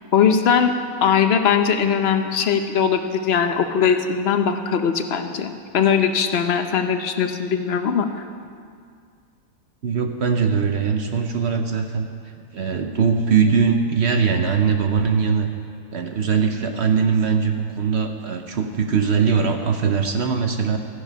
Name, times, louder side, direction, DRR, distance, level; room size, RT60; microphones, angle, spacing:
voice 1, 0.1-0.7 1.0-8.1, left 7 dB, 50° left, 7 dB, 0.9 m, -20 dB
voice 2, 9.8-12.1 12.5-15.5 15.9-20.8, right 6 dB, 55° right, 5 dB, 0.9 m, -21 dB
13.5 x 10.0 x 5.4 m, 2.2 s
omnidirectional pair, 1.6 m